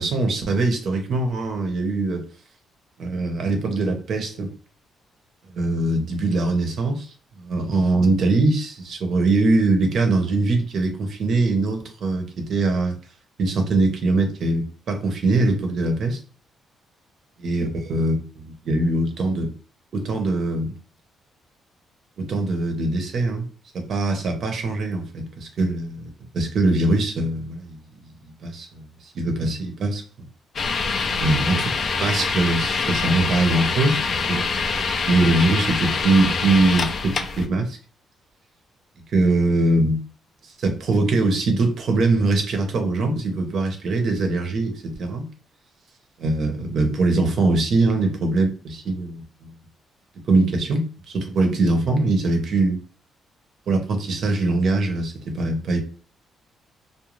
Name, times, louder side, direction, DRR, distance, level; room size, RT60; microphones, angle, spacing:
voice 1, 0.0-2.2 3.0-4.5 5.5-7.1 7.4-12.9 13.4-16.2 17.4-19.5 19.9-20.7 22.2-23.5 23.7-27.8 28.4-28.8 29.1-30.0 31.0-31.7 32.0-34.5 35.0-37.8 39.1-40.0 40.4-45.3 46.2-49.5 50.3-52.8 53.7-55.8, right 2 dB, 60° right, 0.8 m, -22 dB
sound 1, 30.6-37.5, left 4 dB, 55° left, 0.5 m, -25 dB
2.5 x 2.2 x 3.1 m
cardioid pair, 90°, 0 cm